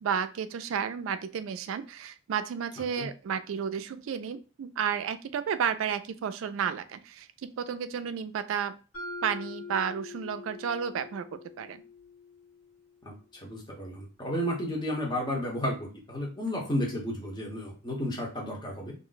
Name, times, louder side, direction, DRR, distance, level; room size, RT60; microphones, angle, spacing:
voice 1, 0.0-8.8 9.2-11.8, right 7 dB, 70° right, 11 dB, 0.3 m, -32 dB
Mallet percussion, 8.9-13.0, left 3 dB, 85° left, 1.4 m, -44 dB
voice 2, 13.0-18.9, left 1 dB, 20° left, -2 dB, 0.8 m, -32 dB
2.5 x 2.1 x 3.8 m, 0.35 s
head